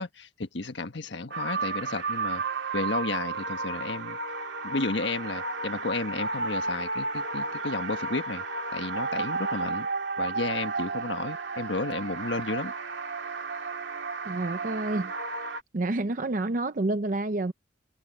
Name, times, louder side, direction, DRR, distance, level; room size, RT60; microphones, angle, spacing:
voice 1, 0.0-2.4 2.7-4.2 4.6-8.4 8.7-9.9 10.2-12.7, left 3 dB, 80° left, 1.4 m, -32 dB
sound 1, 1.3-15.6, right 4 dB, 85° right, 2.0 m, -33 dB
voice 2, 14.2-15.1 15.7-17.5, right 2 dB, 45° right, 0.7 m, -28 dB
head